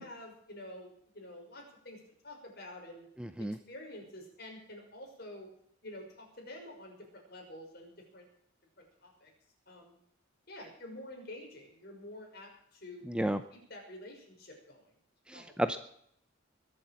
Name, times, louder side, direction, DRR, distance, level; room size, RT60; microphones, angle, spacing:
voice 1, 0.0-2.0 2.2-3.1 3.7-5.5 5.8-8.3 9.0-9.3 9.7-10.0 10.5-14.8 15.3-15.5, left 1 dB, 50° left, 1 dB, 5.8 m, -48 dB
voice 2, 3.2-3.6 13.1-13.4 15.3-15.8, right 1 dB, 5° right, 10 dB, 0.6 m, -32 dB
21.5 x 7.9 x 7.4 m, 0.69 s
head